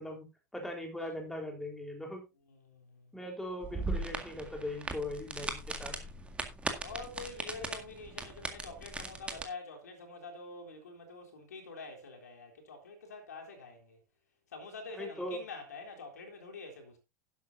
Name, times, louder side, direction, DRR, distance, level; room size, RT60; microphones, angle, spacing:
voice 1, 0.0-2.2 3.1-6.1 14.9-15.4, left 1 dB, 5° left, 4.0 m, -40 dB
voice 2, 2.5-3.1 3.6-3.8 6.8-14.0 14.5-17.0, left 3 dB, 70° left, 3.6 m, -46 dB
sound 1, 3.6-9.4, right 3 dB, 10° right, 2.0 m, -39 dB
12.0 x 11.0 x 2.7 m
figure-of-eight pair, 85°, 9 cm